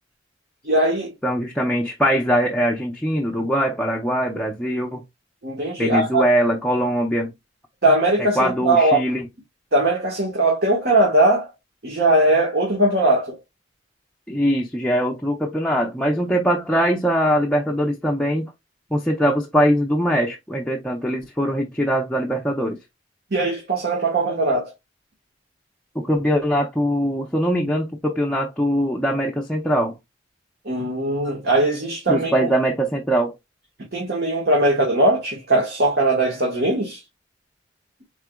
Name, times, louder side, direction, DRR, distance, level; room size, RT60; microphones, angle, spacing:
voice 1, 0.6-1.1 5.4-6.2 7.8-9.0 9.7-11.5 11.8-13.4 23.3-24.7 30.6-32.5 33.9-37.0, right 2 dB, 55° right, 1.5 m, -20 dB
voice 2, 1.2-5.0 5.8-7.3 8.4-9.3 14.3-18.5 18.9-22.8 25.9-30.0 32.1-33.3, equal, 5° left, 0.5 m, -22 dB
4.7 x 3.7 x 2.2 m
head